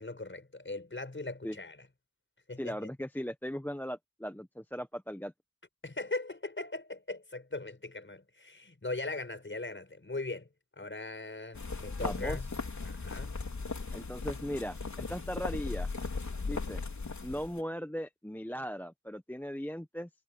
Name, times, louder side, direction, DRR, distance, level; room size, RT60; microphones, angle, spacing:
voice 1, 0.0-1.8 2.5-2.9 5.8-10.5 10.8-12.5 12.8-13.3, left 2 dB, 35° left, 6.0 m, -39 dB
voice 2, 2.6-5.3 12.0-12.4 13.9-15.9 16.5-16.8 17.2-20.1, equal, 5° left, 1.0 m, -38 dB
sound 1, 11.6-17.6, left 4 dB, 55° left, 4.3 m, -37 dB
cardioid pair, 65°, 35 cm